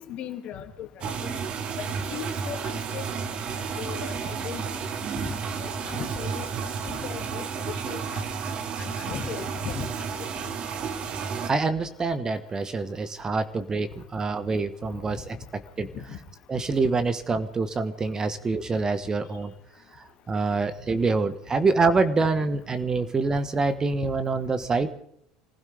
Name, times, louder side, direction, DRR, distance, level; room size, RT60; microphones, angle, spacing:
voice 1, 0.0-1.4 2.1-3.2 3.8-4.7 5.6-6.5 6.8-8.2 8.8-9.9 14.9-15.0 15.9-16.2, left 8 dB, 50° left, 5 dB, 2.3 m, -38 dB
sound 1, 1.0-11.5, right 6 dB, 45° right, 1.5 m, -32 dB
voice 2, 11.5-15.9 16.5-19.5 20.3-24.9, right 3 dB, 25° right, 10 dB, 1.3 m, -26 dB
26.0 x 16.0 x 3.4 m, 0.72 s
hypercardioid pair, 80°, 3 cm